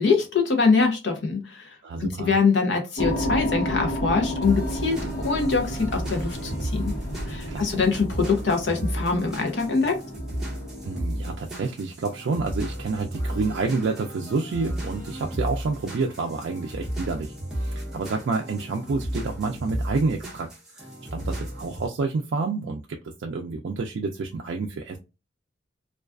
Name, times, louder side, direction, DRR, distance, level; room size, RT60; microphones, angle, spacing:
voice 1, 0.0-1.7 2.0-6.9 7.3-10.0, left 4 dB, 65° left, 0.6 m, -23 dB
voice 2, 1.8-2.3 7.5-7.7 10.8-20.5 20.8-25.0, right 4 dB, 70° right, 0.3 m, -29 dB
sound 1, 3.0-11.3, equal, 90° left, 1.1 m, -32 dB
sound 2, 4.4-21.9, equal, 5° right, 0.6 m, -34 dB
2.3 x 2.3 x 2.3 m
head